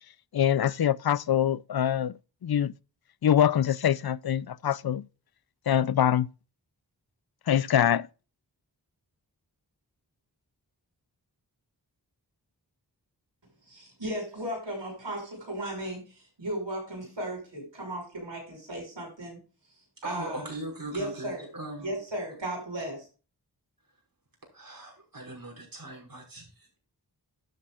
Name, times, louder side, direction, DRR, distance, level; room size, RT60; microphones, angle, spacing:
voice 1, 0.3-2.1 2.4-2.7 3.2-5.0 5.7-6.3 7.5-8.1, left 10 dB, 60° left, 0.5 m, -24 dB
voice 2, 13.7-16.0 16.4-19.4 20.0-20.5 20.9-21.5 21.8-23.0, right 1 dB, 85° right, 5.7 m, -35 dB
voice 3, 20.0-21.9 24.5-26.8, right 1 dB, 50° right, 5.5 m, -40 dB
12.0 x 8.4 x 2.4 m
wide cardioid pair, 40°, 42 cm